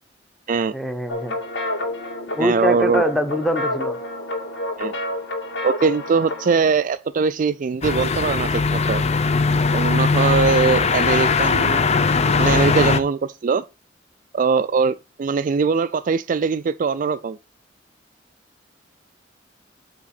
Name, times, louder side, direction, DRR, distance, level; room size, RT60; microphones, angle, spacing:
voice 1, 0.7-1.4 2.3-4.0, equal, ahead, 1.0 m, -23 dB
sound 1, 1.1-6.6, left 1 dB, 80° left, 2.4 m, -29 dB
voice 2, 2.4-3.0 4.8-4.9 5.6-9.0 9.7-11.8 12.4-13.6 14.3-17.4, right 5 dB, 45° right, 0.3 m, -21 dB
sound 2, 7.8-13.0, left 4 dB, 35° left, 0.6 m, -19 dB
8.5 x 3.6 x 5.9 m
head